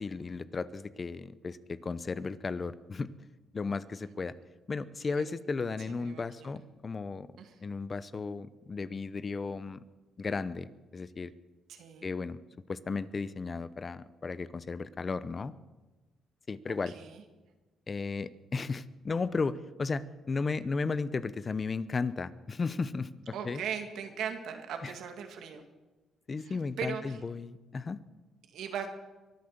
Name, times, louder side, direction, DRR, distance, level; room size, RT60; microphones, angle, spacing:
voice 1, 0.0-3.1 3.5-4.3 4.7-7.3 7.6-9.8 10.2-11.3 12.0-12.4 12.7-15.5 16.5-16.9 17.9-23.1 23.4-23.6 24.8-24.9 26.3-28.0, left 4 dB, 35° left, 15 dB, 0.7 m, -34 dB
voice 2, 5.9-6.5 7.4-7.5 11.7-12.1 16.6-17.2 23.3-25.6 26.4-27.2 28.5-28.9, right 7 dB, 75° right, 5 dB, 2.1 m, -39 dB
23.5 x 8.6 x 6.7 m, 1.2 s
cardioid pair, 90°, 0 cm